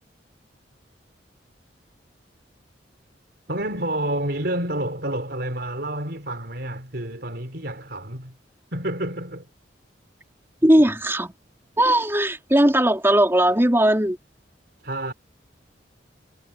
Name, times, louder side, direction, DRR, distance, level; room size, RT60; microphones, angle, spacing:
voice 1, 3.5-8.3 8.7-9.5 14.8-15.1, right 1 dB, 60° right, 4.7 m, -29 dB
voice 2, 10.6-11.3 11.8-14.2, right 1 dB, 15° right, 3.2 m, -18 dB
head